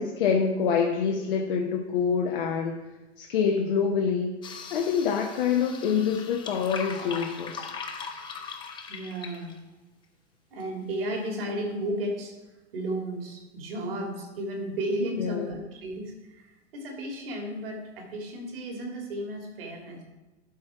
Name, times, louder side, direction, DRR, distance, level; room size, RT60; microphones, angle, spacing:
voice 1, 0.0-2.8 3.2-4.3 4.7-7.7 15.2-15.6, left 6 dB, 50° left, 2 dB, 0.8 m, -26 dB
sound 1, 4.4-9.6, left 5 dB, 15° left, 0.6 m, -39 dB
voice 2, 8.9-9.5 10.5-12.4 12.7-20.0, right 1 dB, 55° right, 2 dB, 2.1 m, -33 dB
12.0 x 4.4 x 4.5 m, 1.1 s
figure-of-eight pair, 105°, 35 cm